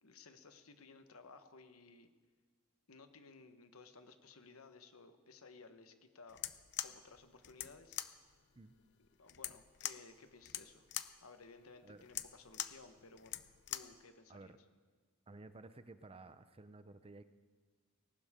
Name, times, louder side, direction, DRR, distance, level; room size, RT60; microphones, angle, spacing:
voice 1, 0.0-2.1 2.9-6.5 6.8-8.0 9.0-10.9 11.2-13.4 13.7-14.5, left 4 dB, 85° left, 8 dB, 1.3 m, -58 dB
sound 1, 6.3-14.0, left 12 dB, 55° left, 0.6 m, -45 dB
voice 2, 15.3-17.2, right 2 dB, 25° right, 12 dB, 0.6 m, -54 dB
19.5 x 18.5 x 3.7 m, 1.5 s
head